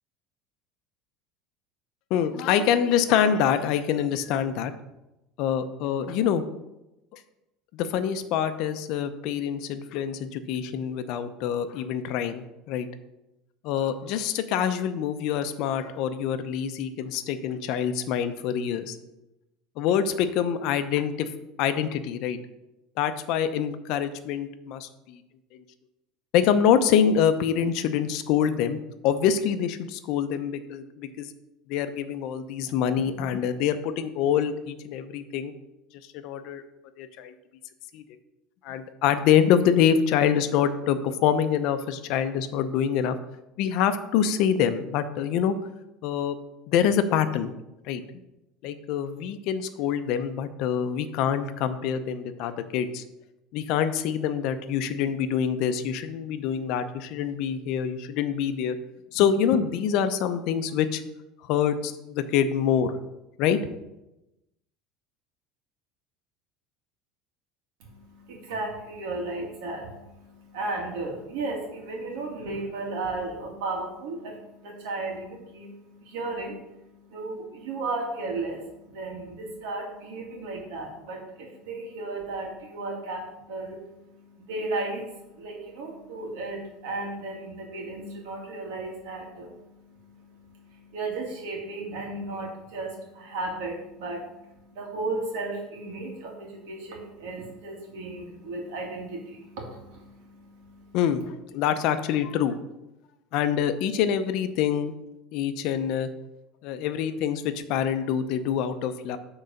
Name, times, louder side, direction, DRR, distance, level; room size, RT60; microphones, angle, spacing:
voice 1, 2.1-4.7 5.4-6.4 7.1-7.2 7.7-12.9 13.6-19.0 19.8-21.3 21.6-22.4 23.0-25.2 26.3-28.8 29.0-31.3 31.7-35.5 36.1-36.6 37.0-37.3 37.9-38.0 38.6-43.2 43.6-45.5 46.0-46.4 46.7-47.5 47.9-48.0 48.6-53.0 53.5-58.8 59.1-61.0 61.4-63.0 63.4-63.6 100.9-102.6 103.3-104.9 105.3-106.1 106.6-109.2, left 8 dB, 60° left, 10 dB, 0.6 m, -25 dB
voice 2, 67.8-101.0, right 2 dB, 80° right, 0 dB, 2.2 m, -35 dB
7.9 x 3.9 x 5.2 m, 0.93 s
supercardioid pair, 145°, 0 cm